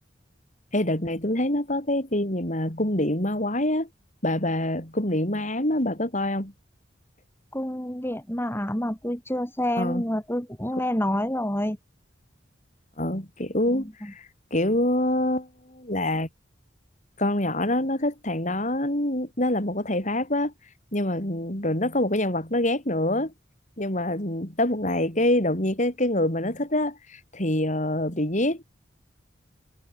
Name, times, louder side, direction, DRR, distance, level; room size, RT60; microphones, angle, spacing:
voice 1, 0.7-3.9 4.2-6.5 9.8-10.0 13.0-14.3 14.5-16.3 17.2-20.5 20.9-23.3 23.8-28.6, left 1 dB, 40° left, 6.5 m, -25 dB
voice 2, 7.5-11.8 13.7-14.1, left 1 dB, 10° left, 5.6 m, -28 dB
head